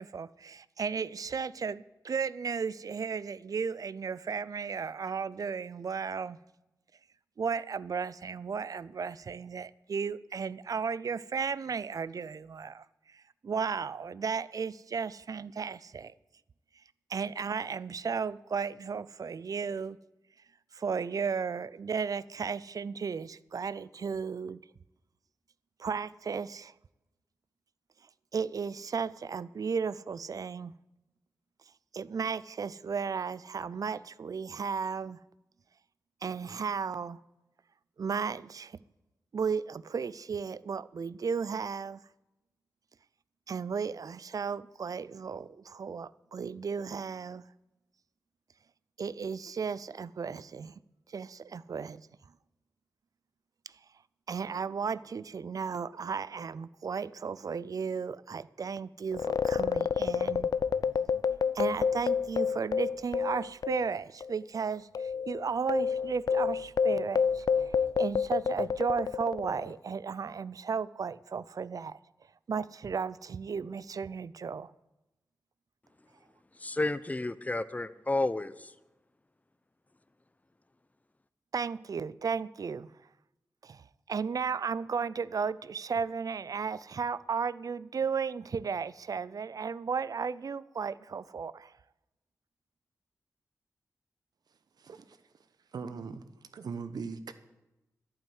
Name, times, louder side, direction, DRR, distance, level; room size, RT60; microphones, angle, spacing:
voice 1, 0.0-6.4 7.4-12.8 13.1-16.1 17.1-20.0 20.7-24.6 25.8-26.7 28.3-30.7 31.9-35.2 36.2-37.2 38.0-38.8 39.3-42.0 43.5-47.4 49.0-50.7 51.1-52.0 54.3-60.5 61.5-72.0 72.5-74.7 81.5-82.9 83.6-91.7, right 6 dB, 60° right, 0.5 m, -34 dB
sound 1, 59.1-63.9 64.2-64.3 64.9-69.7, left 6 dB, 70° left, 0.5 m, -29 dB
voice 2, 76.5-78.7, left 2 dB, 20° left, 0.7 m, -31 dB
voice 3, 94.8-95.2 95.7-97.3, right 5 dB, 80° right, 0.9 m, -40 dB
11.5 x 8.9 x 8.1 m
cardioid pair, 50°, 7 cm